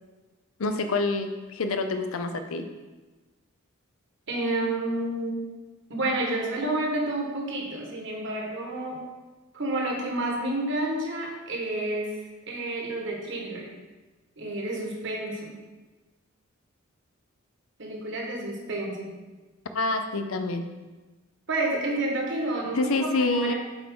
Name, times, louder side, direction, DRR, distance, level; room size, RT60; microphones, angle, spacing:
voice 1, 0.6-2.7 19.7-20.7 22.7-23.5, left 3 dB, 75° left, 7 dB, 0.6 m, -27 dB
voice 2, 4.3-5.4 5.9-9.0 9.5-12.1 12.5-13.7 14.4-15.5 17.8-19.1 21.5-23.5, right 2 dB, 55° right, -1 dB, 1.3 m, -30 dB
7.9 x 4.5 x 3.7 m, 1.2 s
head